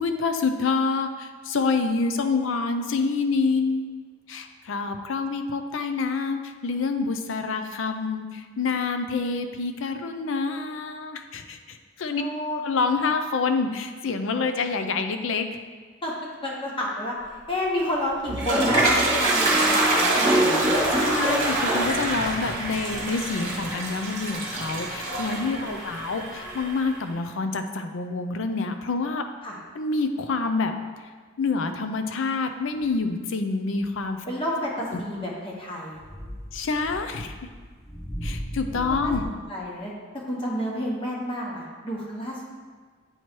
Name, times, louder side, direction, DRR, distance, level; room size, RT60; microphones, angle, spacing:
voice 1, 0.0-12.2 12.6-15.5 20.9-29.2 29.7-30.7 31.4-34.2 36.5-37.4 38.2-39.2, left 4 dB, 65° left, 7 dB, 0.5 m, -27 dB
voice 2, 12.1-12.6 16.0-16.1 16.4-17.2 17.5-20.7 25.4-25.9 29.4-29.6 34.3-36.0 38.7-42.4, left 1 dB, 25° left, -3 dB, 1.0 m, -30 dB
Toilet flush, 18.0-26.9, right 1 dB, 35° right, 1.4 m, -24 dB
sound 1, 32.8-33.1 33.8-34.2 35.2-35.3 35.9-39.2, equal, ahead, 0.4 m, -36 dB
7.9 x 3.1 x 4.4 m, 1.5 s
head